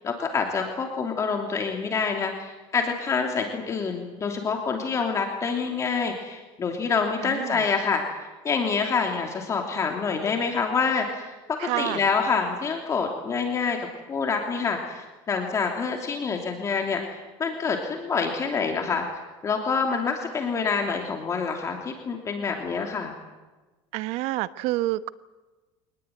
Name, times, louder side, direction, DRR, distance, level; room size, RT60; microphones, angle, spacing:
voice 1, 0.0-8.0 8.4-13.8 14.1-17.0 17.4-19.1 19.4-23.1, left 5 dB, 25° left, 3 dB, 3.0 m, -27 dB
voice 2, 7.2-7.6 11.6-12.0 23.9-25.1, right 17 dB, 70° right, 15 dB, 1.0 m, -28 dB
25.0 x 19.5 x 9.4 m, 1.2 s
cardioid pair, 140°, 11 cm